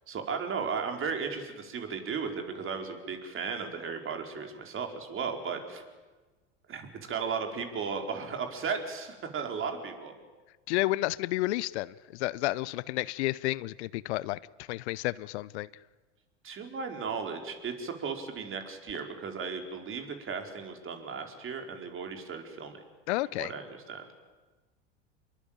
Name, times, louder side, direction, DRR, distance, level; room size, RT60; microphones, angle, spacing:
voice 1, 0.1-5.8 6.7-10.1 16.4-22.8 23.3-24.1, right 5 dB, 35° right, 5 dB, 4.7 m, -35 dB
voice 2, 10.7-15.7 23.1-23.5, left 18 dB, 65° left, 20 dB, 0.8 m, -31 dB
26.5 x 22.0 x 9.0 m, 1.3 s
hypercardioid pair, 85°, 36 cm